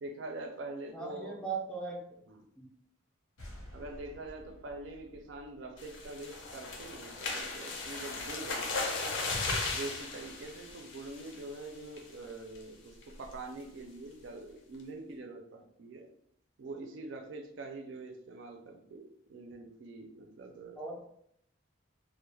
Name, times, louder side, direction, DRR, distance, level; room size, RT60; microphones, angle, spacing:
voice 1, 0.0-1.4 2.3-2.4 3.7-9.1 9.7-16.1 16.6-21.1, right 2 dB, 65° right, 4 dB, 0.4 m, -44 dB
voice 2, 0.9-2.2 2.6-2.7 20.8-21.1, right 4 dB, 5° left, -2 dB, 0.3 m, -39 dB
sound 1, 3.4-6.9, equal, 90° left, 0.8 m, -52 dB
sound 2, 5.8-11.5 12.0-12.2 12.6-12.7 13.0-13.3, left 3 dB, 65° left, 0.5 m, -36 dB
2.2 x 2.0 x 3.1 m, 0.71 s
head